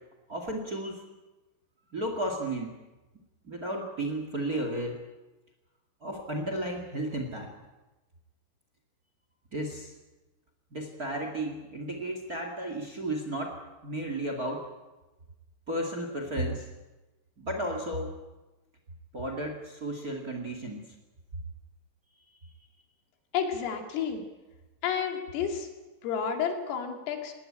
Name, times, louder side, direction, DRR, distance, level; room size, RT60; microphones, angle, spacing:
voice 1, 0.3-1.0 1.9-2.8 3.4-5.0 6.0-7.5 9.5-9.9 10.7-14.7 15.7-16.7 17.4-18.1 19.1-20.9, right 1 dB, 45° right, 4 dB, 1.1 m, -33 dB
voice 2, 23.3-24.2 24.8-25.7 26.0-27.3, left 7 dB, 85° left, 4 dB, 5.0 m, -30 dB
20.0 x 19.0 x 8.8 m, 1.1 s
omnidirectional pair, 5.8 m